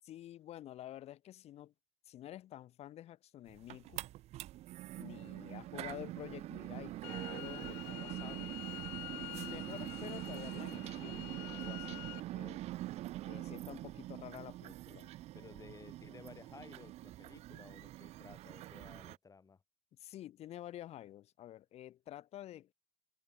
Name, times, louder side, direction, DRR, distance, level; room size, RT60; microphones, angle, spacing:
voice 1, 0.0-1.7 2.1-4.0 4.9-8.6 9.1-12.6 13.2-15.1 20.0-22.7, left 13 dB, 50° left, 3.7 m, -50 dB
sound 1, 3.5-19.2, right 15 dB, 50° right, 1.2 m, -44 dB
sound 2, 7.0-12.2, left 37 dB, 65° left, 2.2 m, -48 dB
voice 2, 15.3-19.6, left 5 dB, 25° left, 5.5 m, -56 dB
hypercardioid pair, 75°, 14 cm